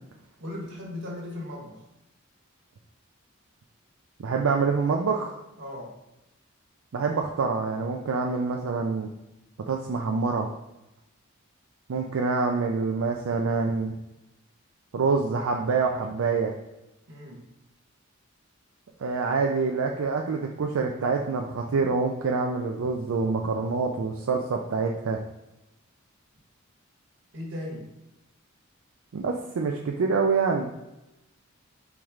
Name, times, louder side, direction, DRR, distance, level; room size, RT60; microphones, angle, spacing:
voice 1, 0.4-1.8 5.6-6.0 17.1-17.4 27.3-27.9, left 1 dB, 60° right, -2 dB, 1.4 m, -37 dB
voice 2, 4.2-5.4 6.9-9.1 9.6-10.5 11.9-13.9 14.9-16.5 19.0-25.2 29.1-30.7, right 4 dB, 85° right, 1 dB, 0.4 m, -26 dB
4.6 x 3.1 x 3.6 m, 0.95 s
head